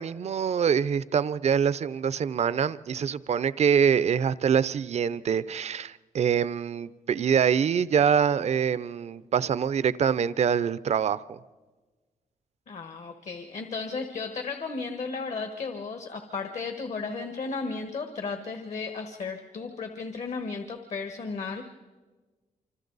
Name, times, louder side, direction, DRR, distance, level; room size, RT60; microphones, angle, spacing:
voice 1, 0.0-11.4, right 7 dB, 55° right, 0.6 m, -25 dB
voice 2, 12.7-21.6, left 4 dB, 60° left, 1.5 m, -34 dB
26.5 x 25.5 x 4.0 m
cardioid pair, 115°, 13 cm